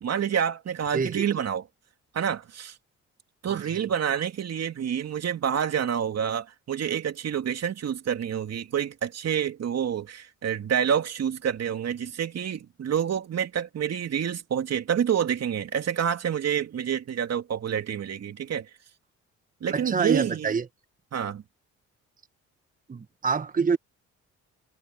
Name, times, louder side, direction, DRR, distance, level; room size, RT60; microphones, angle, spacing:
voice 1, 0.0-1.6 2.1-2.7 3.4-18.7 19.6-20.5 21.1-21.4, right 8 dB, 55° right, 2.8 m, -28 dB
voice 2, 0.9-1.2 3.5-3.6 19.7-20.7 22.9-23.8, right 5 dB, 25° right, 1.2 m, -26 dB
cardioid pair, 90°, 30 cm